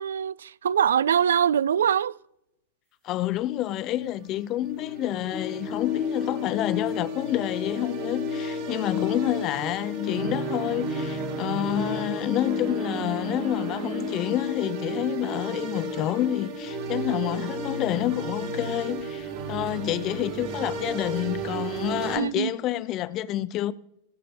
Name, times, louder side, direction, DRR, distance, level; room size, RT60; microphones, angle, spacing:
voice 1, 0.0-2.1 22.1-22.5, right 8 dB, 65° right, 0.3 m, -23 dB
voice 2, 3.0-23.7, left 13 dB, 35° left, 0.5 m, -28 dB
sound 1, 3.7-22.2, right 5 dB, 45° right, 2.1 m, -34 dB
sound 2, 5.3-21.9 22.2-22.3, left 8 dB, 10° left, 1.1 m, -35 dB
17.5 x 6.6 x 4.2 m
figure-of-eight pair, 90°, 0 cm